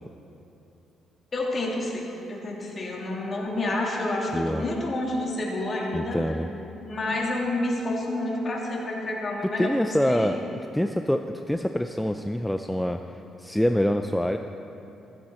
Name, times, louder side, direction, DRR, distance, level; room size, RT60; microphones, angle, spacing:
voice 1, 1.3-6.2 6.8-10.3, left 2 dB, 40° left, -3 dB, 3.3 m, -29 dB
voice 2, 4.3-4.7 5.9-6.5 9.6-10.4 10.7-13.0 13.4-14.4, equal, 5° left, 6 dB, 0.5 m, -25 dB
15.5 x 15.0 x 4.4 m, 2.9 s
cardioid pair, 90°, 0 cm